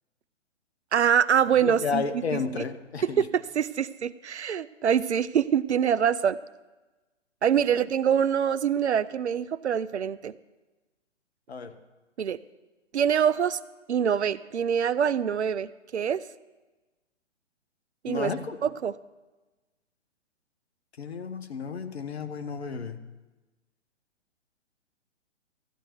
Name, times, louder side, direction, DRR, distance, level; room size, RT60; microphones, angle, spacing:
voice 1, 0.9-2.0 2.3-2.4 3.2-6.4 7.4-10.3 12.2-12.4 12.9-13.6 13.9-16.2 18.0-18.3 18.6-18.9, right 8 dB, 65° right, 18 dB, 0.5 m, -24 dB
voice 2, 1.6-3.3 7.7-7.8 11.5-11.8 18.1-18.6 21.0-23.0, left 5 dB, 60° left, 10 dB, 1.0 m, -32 dB
14.0 x 10.0 x 4.6 m, 1.2 s
figure-of-eight pair, 125°, 36 cm